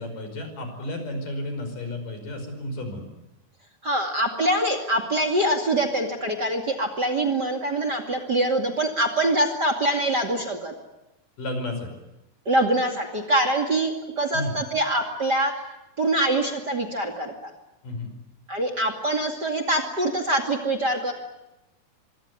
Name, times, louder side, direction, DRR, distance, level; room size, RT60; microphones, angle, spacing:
voice 1, 0.0-3.0 11.4-11.9 14.3-14.6 17.8-18.1, left 1 dB, 65° left, 7 dB, 6.9 m, -32 dB
voice 2, 3.8-10.7 12.5-15.5 16.0-17.5 18.5-21.1, right 1 dB, 30° right, 7 dB, 2.6 m, -24 dB
25.0 x 24.5 x 9.6 m, 0.96 s
omnidirectional pair, 4.0 m